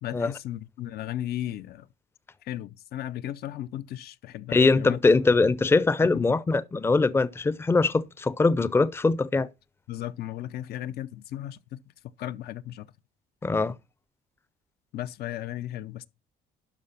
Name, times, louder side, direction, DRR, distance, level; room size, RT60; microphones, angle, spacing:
voice 1, 0.0-1.9 2.4-5.0 6.1-6.3 9.9-11.8 12.2-12.9 14.9-16.1, left 12 dB, 70° left, 0.7 m, -35 dB
voice 2, 4.5-9.5 13.4-13.7, left 3 dB, 15° left, 0.6 m, -22 dB
12.0 x 4.8 x 5.8 m
cardioid pair, 110°, 17 cm